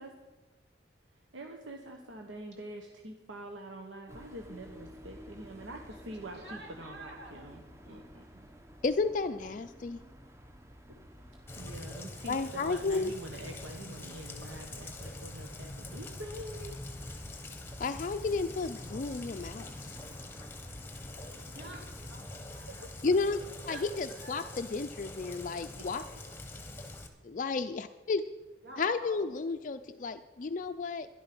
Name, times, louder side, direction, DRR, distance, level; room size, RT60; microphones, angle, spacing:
voice 1, 1.3-8.4 11.5-16.8 22.7-22.9 25.8-25.9, right 1 dB, 85° right, 3 dB, 1.2 m, -45 dB
sound 1, 4.1-22.3, equal, 15° right, 0.8 m, -53 dB
voice 2, 6.4-7.5 10.9-11.0 21.5-22.9 23.7-24.5 28.6-29.3, right 2 dB, 65° right, 0 dB, 3.2 m, -49 dB
voice 3, 8.8-10.0 12.3-13.1 17.8-20.0 23.0-23.4 23.7-26.0 27.2-28.2 28.8-31.1, left 4 dB, 45° left, 8 dB, 0.4 m, -32 dB
Rain, 11.5-27.1, left 2 dB, 10° left, 1.2 m, -44 dB
12.5 x 11.0 x 6.0 m, 1.2 s
head